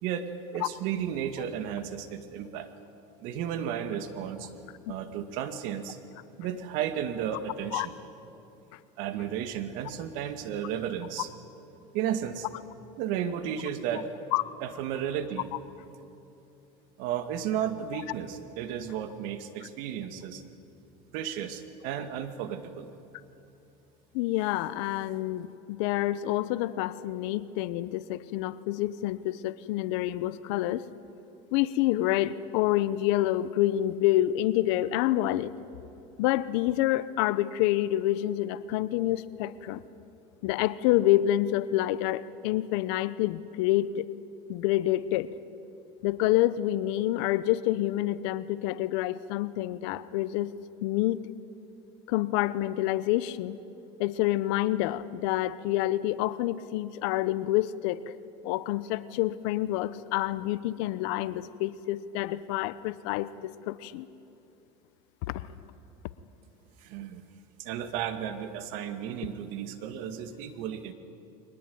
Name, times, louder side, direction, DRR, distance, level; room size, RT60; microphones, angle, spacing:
voice 1, 0.0-2.7 3.2-4.5 4.9-6.0 6.4-7.9 9.0-11.3 11.9-12.5 13.0-14.1 14.6-15.5 17.0-20.4 21.1-22.9 66.8-67.2 67.6-70.9, right 9 dB, 70° right, 9 dB, 2.0 m, -33 dB
voice 2, 24.1-30.8 31.5-35.5 36.2-39.8 40.4-44.0 44.5-45.3 46.0-50.5 50.8-51.2 52.1-53.6 54.0-58.1 58.4-64.1 65.3-65.5, left 14 dB, 75° left, 16 dB, 0.9 m, -27 dB
22.5 x 19.5 x 9.4 m, 2.8 s
supercardioid pair, 120°, 15 cm